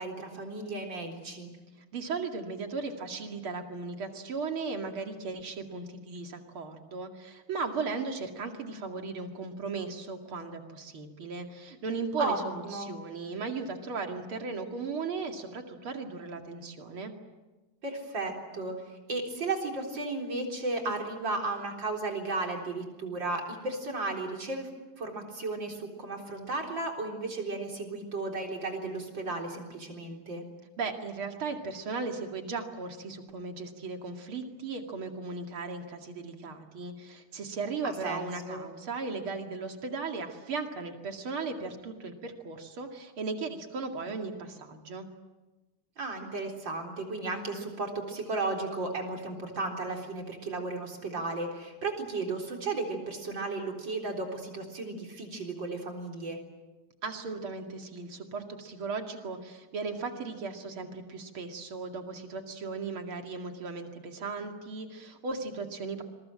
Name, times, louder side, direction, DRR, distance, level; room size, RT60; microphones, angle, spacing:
voice 1, 0.0-1.5 12.2-12.4 12.7-12.9 17.8-24.7 25.0-30.4 37.8-38.6 46.0-56.4, right 3 dB, 60° right, 2 dB, 4.6 m, -34 dB
voice 2, 1.9-17.1 30.8-45.1 57.0-66.0, right 4 dB, 85° right, 4 dB, 3.2 m, -36 dB
27.5 x 22.5 x 7.7 m, 1.2 s
omnidirectional pair, 2.3 m